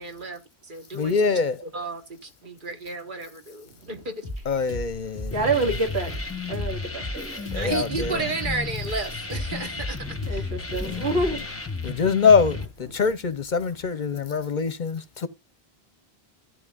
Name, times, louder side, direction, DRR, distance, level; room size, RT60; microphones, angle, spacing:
voice 1, 0.0-1.2 1.7-4.4 7.5-10.4, right 3 dB, 50° right, 1.5 m, -33 dB
voice 2, 0.9-1.6 4.5-5.3 7.5-8.2 10.8-11.0 11.8-15.3, left 5 dB, 50° left, 0.8 m, -23 dB
voice 3, 3.7-4.0 5.3-6.1 6.5-7.5 10.3-11.7 12.9-13.0 14.3-14.4, right 2 dB, 90° right, 2.3 m, -28 dB
sound 1, 4.2-13.9, left 1 dB, 30° right, 4.0 m, -37 dB
sound 2, 5.3-12.7, left 4 dB, 15° left, 0.9 m, -34 dB
14.5 x 8.4 x 2.4 m
omnidirectional pair, 1.1 m